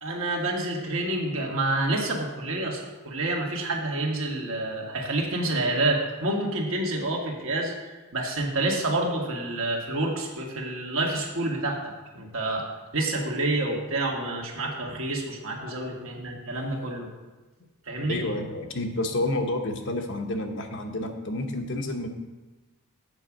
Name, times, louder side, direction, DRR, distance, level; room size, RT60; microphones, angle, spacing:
voice 1, 0.0-7.7 8.1-12.7 12.9-17.1 17.9-18.2, right 2 dB, 65° right, 0 dB, 1.7 m, -28 dB
voice 2, 18.1-22.1, left 1 dB, 55° left, 4 dB, 0.9 m, -30 dB
8.0 x 5.0 x 7.2 m, 1.2 s
head